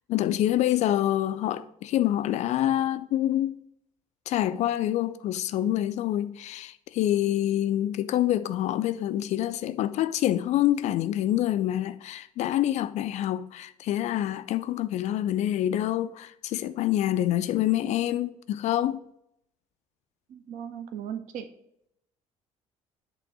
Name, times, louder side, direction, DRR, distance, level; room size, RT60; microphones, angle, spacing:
voice 1, 0.1-3.6 4.3-19.0, left 12 dB, 40° left, 0.4 m, -26 dB
voice 2, 20.3-21.5, right 8 dB, 45° right, 0.7 m, -37 dB
8.2 x 3.3 x 6.0 m
figure-of-eight pair, 55°, 18 cm